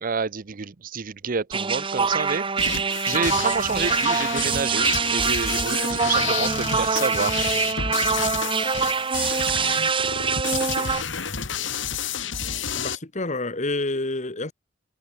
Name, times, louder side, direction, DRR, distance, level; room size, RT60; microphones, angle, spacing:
voice 1, 0.0-2.4 3.0-7.4, right 5 dB, 50° right, 0.7 m, -28 dB
sound 1, 1.5-11.0, right 5 dB, 30° right, 1.0 m, -24 dB
sound 2, 2.6-12.9, left 7 dB, 90° left, 3.3 m, -30 dB
voice 2, 12.8-14.5, left 2 dB, 40° left, 1.9 m, -28 dB
head